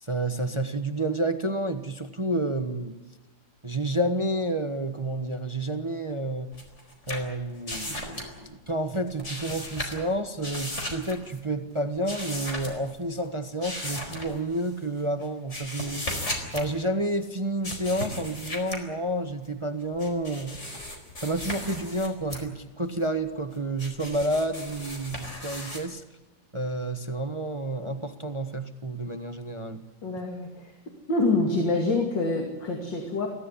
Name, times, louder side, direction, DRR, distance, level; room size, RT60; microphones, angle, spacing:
voice 1, 0.0-2.9 3.6-6.5 7.1-16.2 16.5-20.8 21.2-26.0 26.5-29.8, right 1 dB, 20° right, 8 dB, 1.1 m, -30 dB
sound 1, 6.5-8.4 8.9-10.1 10.4-11.4 11.9-13.0 13.6-14.7 15.2-16.7 17.6-18.8 19.8-22.4 23.0-25.8, left 1 dB, 35° left, 4.8 m, -36 dB
voice 2, 30.0-30.8 31.1-33.3, left 2 dB, 75° left, 2 dB, 3.2 m, -26 dB
24.0 x 16.5 x 9.9 m, 1.1 s
omnidirectional pair, 2.0 m